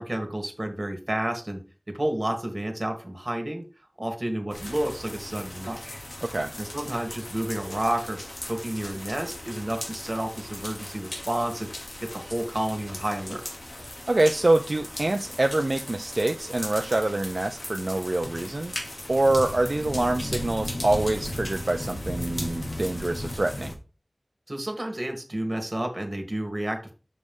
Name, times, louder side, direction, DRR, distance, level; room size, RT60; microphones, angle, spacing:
voice 1, 0.0-1.6 1.9-3.6 4.0-6.0 6.6-8.2 8.5-11.7 12.0-13.4 21.1-21.2 24.5-26.9, right 1 dB, 40° right, 3 dB, 1.6 m, -30 dB
sound 1, 4.5-23.7, left 1 dB, 70° left, 1.5 m, -37 dB
voice 2, 6.2-6.5 14.1-18.7 19.1-23.7, right 2 dB, 65° right, 4 dB, 0.5 m, -25 dB
6.7 x 3.1 x 5.3 m, 0.35 s
wide cardioid pair, 45°, 0 cm